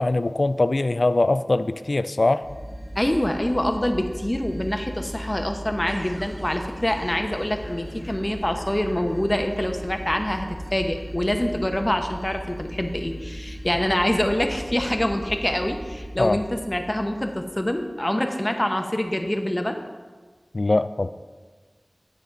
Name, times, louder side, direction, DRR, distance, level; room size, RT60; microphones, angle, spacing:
voice 1, 0.0-2.4 16.2-16.4 20.5-21.1, left 2 dB, 75° left, 13 dB, 0.3 m, -22 dB
sound 1, 2.4-17.8, equal, 5° left, 1.3 m, -37 dB
voice 2, 3.0-19.8, left 1 dB, 25° left, 5 dB, 0.9 m, -25 dB
9.3 x 7.3 x 3.9 m, 1.4 s
wide cardioid pair, 45°, 0 cm